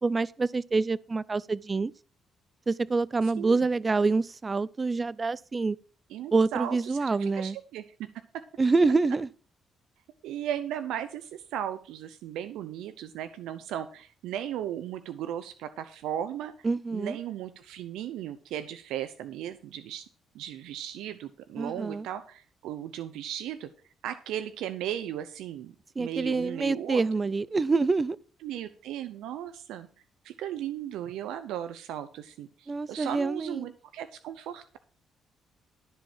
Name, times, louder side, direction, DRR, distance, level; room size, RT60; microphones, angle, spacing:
voice 1, 0.0-1.9 2.7-5.8 6.3-7.6 8.6-9.3 16.6-17.2 21.6-22.1 26.0-28.2 32.7-33.7, right 3 dB, 30° right, 0.4 m, -26 dB
voice 2, 3.4-3.7 6.1-8.1 8.3-8.4 10.2-20.0 20.3-23.7 24.0-27.0 28.4-29.9 30.2-34.8, right 10 dB, 90° right, 0.7 m, -36 dB
13.0 x 4.6 x 7.2 m
cardioid pair, 90°, 0 cm